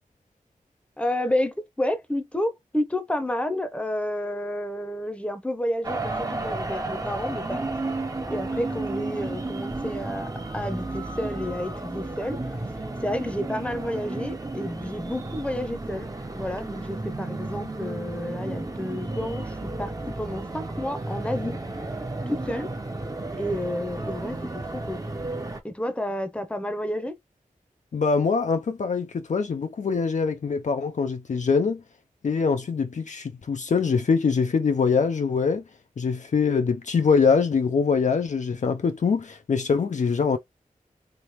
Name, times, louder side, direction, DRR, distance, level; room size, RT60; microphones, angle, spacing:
voice 1, 1.0-7.8 8.3-12.4 13.0-16.1 16.3-21.6 22.3-22.7 23.4-25.0 25.6-27.2, left 1 dB, 10° left, 0.8 m, -30 dB
sound 1, 5.8-25.6, right 2 dB, 25° right, 0.8 m, -33 dB
voice 2, 27.9-31.8 32.2-35.6 36.0-40.4, left 5 dB, 60° left, 0.4 m, -23 dB
3.3 x 3.0 x 2.9 m
wide cardioid pair, 60°, 14 cm